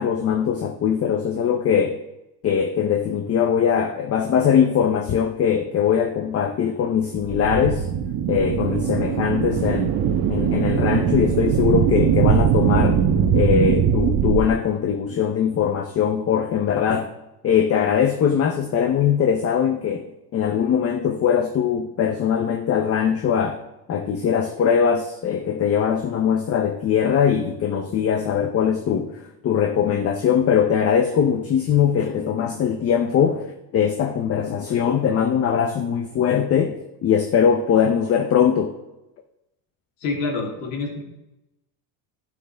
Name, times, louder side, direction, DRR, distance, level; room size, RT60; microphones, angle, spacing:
voice 1, 0.0-2.0 2.4-7.9 8.3-9.9 10.3-13.0 13.3-17.1 17.4-20.1 20.3-23.6 23.9-38.7, left 8 dB, 30° left, 0.7 m, -21 dB
sound 1, 7.2-14.4, right 8 dB, 50° right, 1.1 m, -20 dB
voice 2, 40.0-41.0, left 3 dB, 80° left, 3.1 m, -27 dB
11.5 x 9.1 x 3.4 m
cardioid pair, 125°, 45 cm